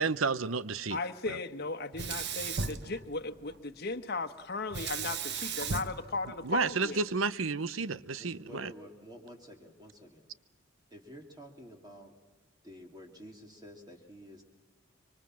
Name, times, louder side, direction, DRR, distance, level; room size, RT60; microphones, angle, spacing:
voice 1, 0.0-1.0 1.3-1.4 6.4-8.7, right 4 dB, 85° right, 0.8 m, -31 dB
voice 2, 0.9-7.0, left 3 dB, 55° left, 1.2 m, -36 dB
Sink (filling or washing), 1.9-3.6 4.7-7.0, right 5 dB, 60° right, 1.3 m, -36 dB
voice 3, 8.2-10.3 10.9-12.1 12.6-14.4, equal, 20° right, 2.7 m, -50 dB
26.0 x 24.5 x 7.5 m
head